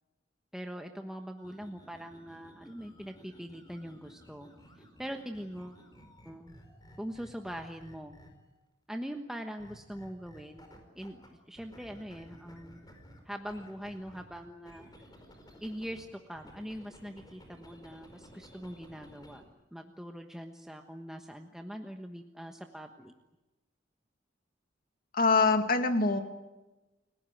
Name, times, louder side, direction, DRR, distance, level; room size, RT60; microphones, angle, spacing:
voice 1, 0.5-4.5 4.8-5.8 6.2-6.5 7.0-8.2 8.9-10.7 10.9-12.8 13.2-14.9 15.6-19.4 19.7-23.1, equal, 5° right, 4 dB, 1.2 m, -42 dB
sound 1, 1.4-8.6 9.6-11.3 11.6-16.0 16.3-19.4, equal, 20° left, 4.9 m, -55 dB
voice 2, 25.1-26.2, left 3 dB, 50° left, 7 dB, 2.2 m, -24 dB
30.0 x 17.5 x 9.3 m, 1.1 s
head